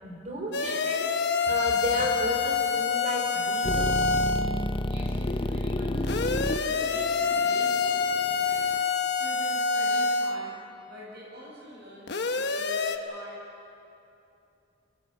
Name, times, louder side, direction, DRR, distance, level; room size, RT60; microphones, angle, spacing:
voice 1, 0.0-1.1 1.5-4.0, right 1 dB, 40° right, 1 dB, 4.1 m, -33 dB
sound 1, 0.5-4.5 6.0-10.4 12.1-13.0, left 4 dB, 65° left, 1.1 m, -26 dB
sound 2, 3.6-8.8, left 1 dB, 30° left, 0.7 m, -30 dB
voice 2, 4.8-6.0 6.6-10.5 10.9-13.4, right 1 dB, 60° right, -6 dB, 7.8 m, -45 dB
25.5 x 19.0 x 7.4 m, 2.7 s
head